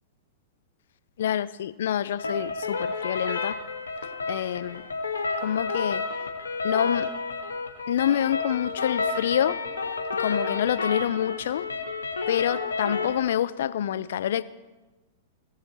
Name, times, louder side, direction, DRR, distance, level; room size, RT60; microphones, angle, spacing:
voice 1, 1.2-3.6 4.3-4.8 5.4-6.0 6.6-7.1 7.9-9.6 10.2-11.7 12.3-14.4, left 10 dB, 65° left, 17 dB, 0.4 m, -27 dB
sound 1, 2.2-13.2, left 4 dB, 85° left, 1.2 m, -30 dB
17.0 x 7.1 x 4.2 m, 1.2 s
hypercardioid pair, 105°, 0 cm